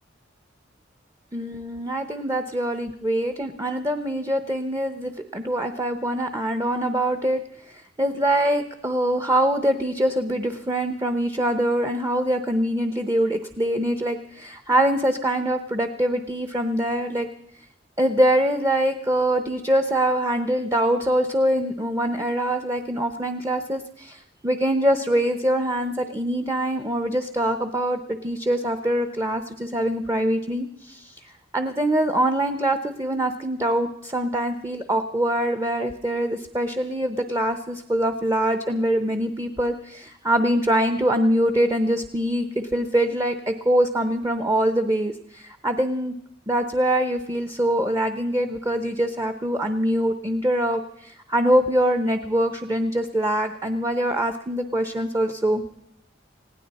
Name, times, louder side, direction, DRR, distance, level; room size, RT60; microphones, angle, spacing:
voice 1, 1.3-17.3 18.0-46.2 46.5-55.6, right 1 dB, 15° right, 8 dB, 0.7 m, -24 dB
20.0 x 16.5 x 4.1 m, 0.77 s
head